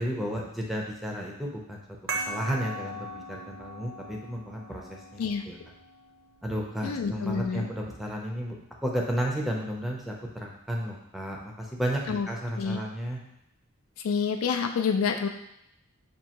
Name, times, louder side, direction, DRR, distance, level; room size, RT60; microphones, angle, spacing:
voice 1, 0.0-1.8 2.1-5.6 6.4-8.6 8.8-12.0 12.3-13.2, equal, ahead, -2 dB, 0.5 m, -33 dB
sound 1, 2.1-7.2, right 2 dB, 60° right, 0.6 m, -39 dB
voice 2, 6.8-7.7 12.1-12.3 12.6-12.8 14.0-15.3, left 6 dB, 75° left, 5 dB, 0.4 m, -28 dB
5.2 x 2.7 x 2.9 m, 0.78 s
head